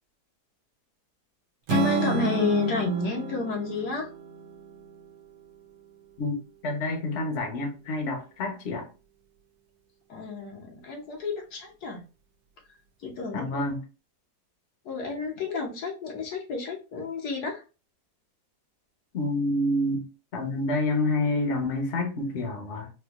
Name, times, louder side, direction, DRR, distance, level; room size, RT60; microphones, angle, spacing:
voice 1, 1.7-4.1 10.1-12.0 13.0-13.6 14.8-17.6, left 3 dB, 75° left, 1.4 m, -30 dB
Strum, 1.7-5.9, right 4 dB, 75° right, 1.0 m, -31 dB
voice 2, 6.6-8.9 13.3-13.8 19.1-20.0 20.3-22.9, left 2 dB, 50° left, 1.0 m, -28 dB
4.3 x 2.4 x 2.4 m
omnidirectional pair, 1.7 m